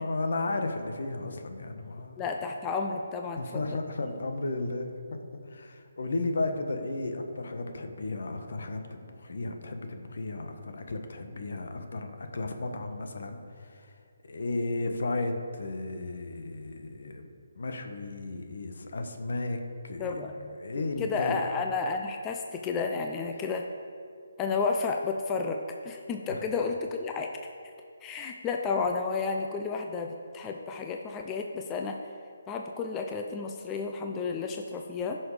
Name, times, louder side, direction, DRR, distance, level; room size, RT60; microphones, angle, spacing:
voice 1, 0.0-2.2 3.4-4.9 5.5-13.9 14.2-17.3 17.5-19.6 19.8-20.2 20.6-21.4 26.3-26.4, left 2 dB, 70° left, 5 dB, 1.3 m, -34 dB
voice 2, 2.2-3.6 20.0-23.6 24.4-27.3 28.0-32.0 32.5-35.2, left 4 dB, 15° left, 3 dB, 0.5 m, -32 dB
14.5 x 6.3 x 5.0 m, 2.3 s
hypercardioid pair, 160°, 0 cm